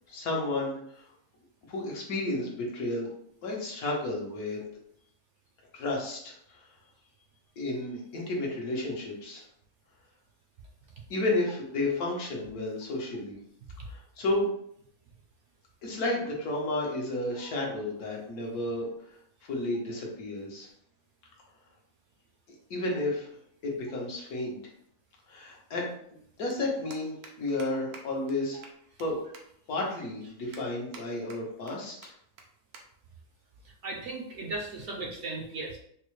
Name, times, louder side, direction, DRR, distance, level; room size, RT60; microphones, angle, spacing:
voice 1, 0.1-0.8 1.7-3.1 3.4-4.6 5.7-6.3 7.6-9.4 11.1-13.4 13.9-14.5 15.8-18.9 19.4-20.7 22.7-23.3 23.6-24.6 25.3-25.9 26.4-28.6 29.0-29.2 29.7-31.9, left 2 dB, 75° left, -2 dB, 1.4 m, -32 dB
sound 1, 26.5-26.6 26.9-27.3 27.6-27.7 27.9-28.0 28.3-28.4 28.6-29.1 29.3-29.4 29.9-30.0 30.5-31.0 31.3-31.7 32.0-32.1 32.4-32.5 32.7-32.8 33.2-33.4 34.2-34.4, right 4 dB, 90° right, 1.2 m, -48 dB
voice 2, 33.6-35.8, right 3 dB, 65° right, 0 dB, 0.8 m, -37 dB
4.4 x 2.1 x 3.1 m, 0.68 s
omnidirectional pair, 1.6 m